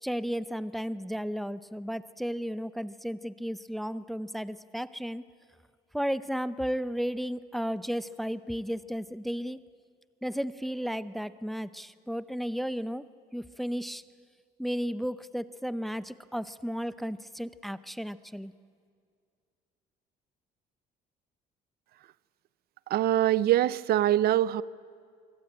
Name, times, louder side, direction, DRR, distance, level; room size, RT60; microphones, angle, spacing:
voice 1, 0.0-5.2 5.9-9.6 10.2-13.0 13.3-14.0 14.6-18.5, equal, ahead, 15 dB, 0.6 m, -34 dB
voice 2, 22.9-24.6, right 13 dB, 65° right, 18 dB, 0.6 m, -23 dB
25.0 x 24.0 x 8.7 m, 2.2 s
cardioid pair, 110°, 17 cm